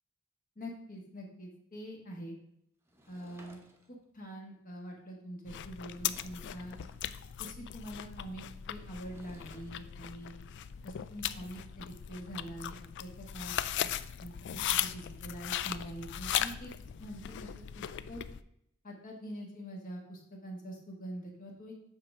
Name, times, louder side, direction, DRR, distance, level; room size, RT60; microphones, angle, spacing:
voice 1, 0.5-2.4 3.1-3.6 3.9-6.7 7.4-10.4 10.8-13.9 14.2-16.7 17.0-18.2 18.8-21.7, equal, 40° left, -1 dB, 1.6 m, -45 dB
Sliding door / Wood, 2.9-4.1 5.6-5.7 5.9-7.1 8.8-9.8, right 1 dB, 10° right, 0.9 m, -59 dB
sound 1, 5.5-18.4, left 11 dB, 60° left, 0.3 m, -38 dB
8.1 x 3.5 x 6.0 m, 0.74 s
head